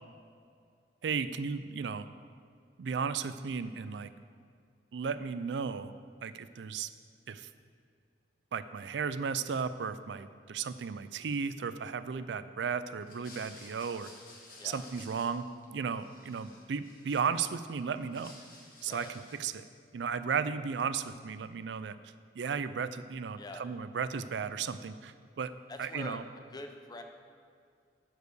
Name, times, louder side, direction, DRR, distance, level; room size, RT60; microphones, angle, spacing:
voice 1, 1.0-2.1 2.8-4.1 4.9-5.9 6.2-6.9 7.3-7.5 8.5-14.1 14.6-18.3 18.8-19.1 19.4-19.7 19.9-21.9 22.4-25.5 25.8-26.2, right 6 dB, 85° right, 13 dB, 0.4 m, -35 dB
sound 1, 13.0-15.6 15.9-17.6 17.9-19.5, left 2 dB, 55° left, 1.8 m, -54 dB
voice 2, 25.7-26.2 26.5-27.0, left 2 dB, 25° left, 5 dB, 0.7 m, -44 dB
9.2 x 4.9 x 6.7 m, 2.2 s
head